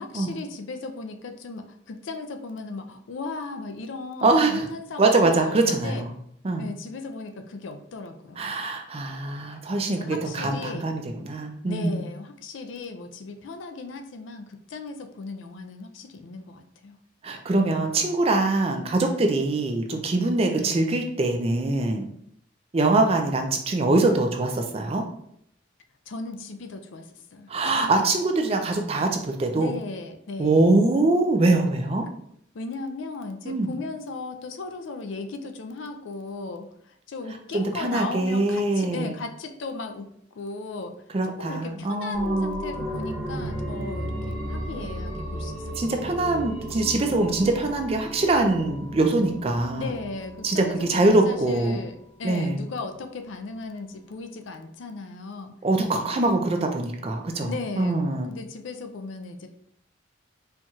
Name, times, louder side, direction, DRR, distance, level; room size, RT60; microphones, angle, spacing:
voice 1, 0.0-6.0 6.6-8.6 9.9-10.9 11.7-17.0 20.5-20.8 26.1-27.5 29.6-30.7 32.5-40.1 40.3-40.9 41.2-46.2 49.8-55.5 56.2-56.4 57.5-58.0 58.3-59.5, left 3 dB, 75° left, 6 dB, 0.4 m, -36 dB
voice 2, 4.2-4.7 5.0-6.1 6.4-6.6 8.4-12.0 17.2-22.1 22.7-25.1 27.5-29.7 30.4-32.1 33.5-33.7 37.5-39.1 41.1-42.6 45.8-49.9 50.4-51.8 52.2-52.6 55.6-58.3, right 2 dB, 30° right, 4 dB, 0.4 m, -23 dB
sound 1, 42.1-51.5 51.8-51.9, equal, 70° right, 1.0 m, -34 dB
4.4 x 2.8 x 2.3 m, 0.71 s
head